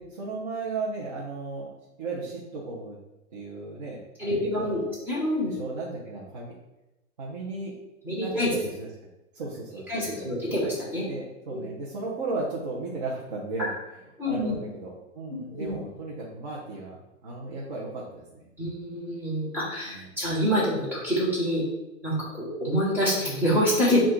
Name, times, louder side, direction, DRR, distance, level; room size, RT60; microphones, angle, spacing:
voice 1, 0.1-1.7 2.0-3.0 3.3-4.9 5.4-6.5 7.2-7.7 8.2-8.9 9.3-10.3 11.1-18.5 19.8-20.1, right 3 dB, 30° right, -6 dB, 0.7 m, -35 dB
voice 2, 4.2-5.5 8.0-8.5 9.9-11.1 11.5-11.6 13.6-13.7 14.2-14.5 15.3-15.8 18.6-21.6 22.0-24.0, equal, 5° right, -8 dB, 1.0 m, -26 dB
4.9 x 2.4 x 4.5 m, 0.98 s
hypercardioid pair, 155°, 42 cm